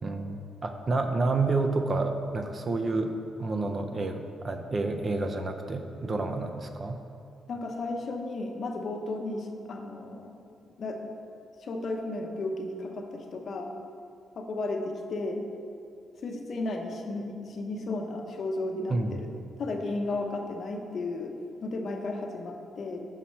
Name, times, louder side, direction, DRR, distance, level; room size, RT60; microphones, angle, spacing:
voice 1, 0.0-3.1 3.4-7.0 18.9-19.2, right 3 dB, 35° right, 6 dB, 0.4 m, -29 dB
voice 2, 7.5-10.3 10.8-11.1 11.6-13.7 14.4-15.4 16.2-19.3 19.6-23.1, left 2 dB, 50° left, 3 dB, 0.7 m, -34 dB
6.3 x 5.7 x 4.2 m, 2.5 s
cardioid pair, 135°, 0 cm